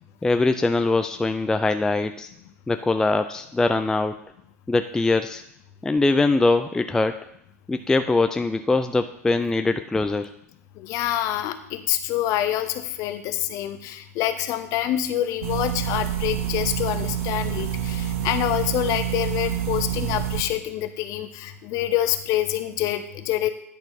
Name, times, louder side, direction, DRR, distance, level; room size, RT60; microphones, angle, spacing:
voice 1, 0.2-2.3 2.7-4.2 4.7-5.4 5.8-7.2 7.7-10.3, left 3 dB, 5° left, 8 dB, 0.3 m, -22 dB
voice 2, 10.8-23.5, left 13 dB, 40° left, 10 dB, 0.8 m, -26 dB
sound 1, 15.4-20.4, right 10 dB, 55° right, 1.4 m, -27 dB
10.5 x 4.4 x 5.2 m, 0.75 s
figure-of-eight pair, 95°, 8 cm